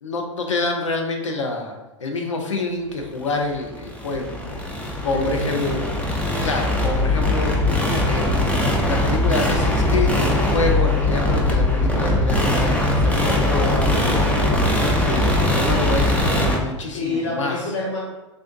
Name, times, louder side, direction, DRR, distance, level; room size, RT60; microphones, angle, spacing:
voice 1, 0.0-4.6 5.0-5.8 6.4-7.6 8.1-8.3 8.8-12.7 13.0-13.8 15.0-17.7, left 2 dB, 80° left, 3 dB, 0.5 m, -27 dB
sound 1, 3.3-16.6, left 1 dB, 10° left, 0.6 m, -21 dB
voice 2, 5.0-5.9 13.4-14.7 16.9-18.0, left 2 dB, 60° left, -7 dB, 1.5 m, -27 dB
3.4 x 2.5 x 2.6 m, 1.0 s
figure-of-eight pair, 90°, 16 cm